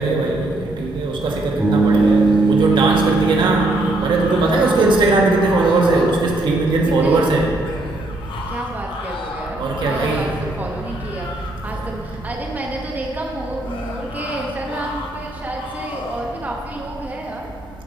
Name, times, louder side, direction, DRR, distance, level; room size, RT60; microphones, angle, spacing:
voice 1, 0.0-3.7 4.0-7.5 9.6-10.3, right 3 dB, 75° right, 0 dB, 1.2 m, -18 dB
Bass guitar, 1.6-5.7, right 4 dB, 5° right, 2.1 m, -20 dB
sound 1, 2.6-5.0 5.3-6.3 7.6-10.4 10.8-11.7 13.6-15.1 15.6-16.3, left 4 dB, 80° left, 0.8 m, -33 dB
voice 2, 4.5-5.0 7.0-7.2 8.5-9.6 9.8-10.3 10.6-11.3 11.6-17.5, right 2 dB, 20° right, -1 dB, 1.0 m, -29 dB
14.5 x 5.2 x 4.1 m, 2.6 s
wide cardioid pair, 155°, 8 cm